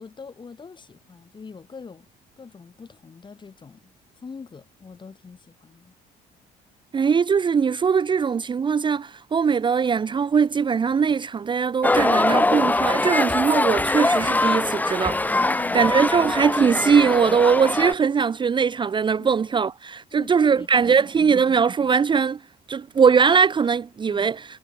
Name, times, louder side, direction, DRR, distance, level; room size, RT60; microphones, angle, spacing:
voice 1, 0.0-2.1 2.4-5.9 15.4-15.8 19.2-19.3 20.1-21.4 24.1-24.3, left 5 dB, 25° left, 2.9 m, -42 dB
voice 2, 6.9-15.4 15.7-22.4 22.7-24.4, right 6 dB, 30° right, 0.7 m, -21 dB
sound 1, 11.8-17.9, left 2 dB, 10° left, 0.9 m, -22 dB
cardioid pair, 110°, 17 cm